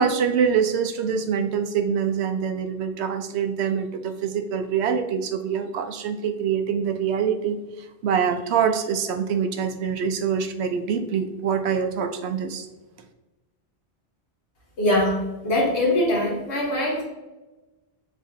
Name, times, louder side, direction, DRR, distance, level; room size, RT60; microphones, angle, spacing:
voice 1, 0.0-7.6 8.0-12.6, right 7 dB, 80° right, 7 dB, 0.8 m, -25 dB
voice 2, 14.8-17.0, left 1 dB, 85° left, -3 dB, 1.6 m, -22 dB
6.5 x 2.7 x 2.6 m, 1.1 s
omnidirectional pair, 1.1 m